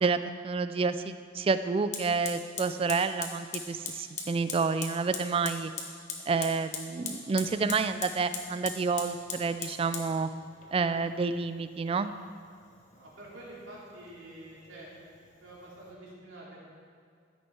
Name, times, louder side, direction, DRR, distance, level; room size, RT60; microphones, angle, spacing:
voice 1, 0.0-5.7 6.3-10.3 10.7-12.1, right 4 dB, 30° right, 12 dB, 0.3 m, -29 dB
Fire, 0.9-1.0 1.9-15.9, left 5 dB, 40° left, 1.1 m, -42 dB
voice 2, 12.9-14.9 15.4-16.6, right 1 dB, 75° right, -6 dB, 2.9 m, -47 dB
14.0 x 6.3 x 4.4 m, 2.2 s
head